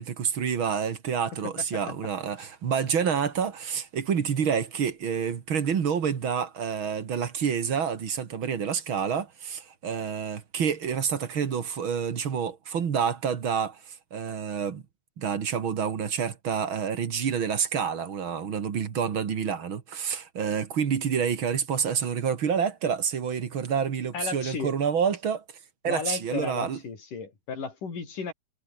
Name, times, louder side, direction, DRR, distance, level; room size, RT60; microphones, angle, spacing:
voice 1, 0.0-14.8 15.2-25.4 25.8-26.8, right 7 dB, 45° right, 2.2 m, -28 dB
voice 2, 24.1-24.7 25.8-28.3, left 5 dB, 75° left, 6.5 m, -34 dB
omnidirectional pair, 3.8 m